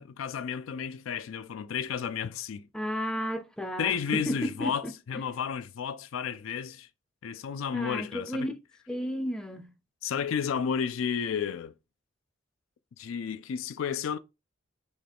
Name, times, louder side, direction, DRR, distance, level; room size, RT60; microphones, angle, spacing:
voice 1, 0.0-2.7 3.8-6.9 7.2-8.5 10.0-11.7 13.0-14.2, left 7 dB, 85° left, 0.4 m, -32 dB
voice 2, 2.7-4.9 7.7-8.6 8.9-9.7, equal, 5° left, 0.5 m, -33 dB
6.1 x 2.3 x 3.4 m
head